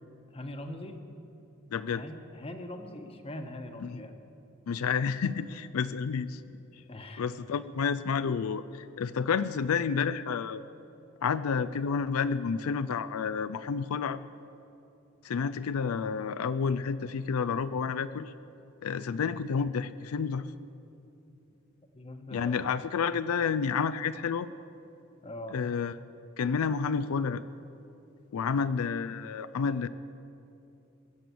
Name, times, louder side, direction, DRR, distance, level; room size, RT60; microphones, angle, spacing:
voice 1, 0.3-1.0 1.9-4.2 6.9-7.3 19.1-19.3 21.2-21.3 21.9-22.7 25.2-25.6, left 1 dB, 25° left, 6 dB, 1.1 m, -42 dB
voice 2, 1.7-2.0 3.8-4.0 4.7-6.4 7.2-10.6 11.2-14.2 15.2-18.3 18.8-20.5 22.3-24.5 25.5-25.9 26.4-27.4 28.3-29.9, left 6 dB, 90° left, 14 dB, 0.4 m, -30 dB
22.0 x 7.8 x 6.9 m, 2.8 s
head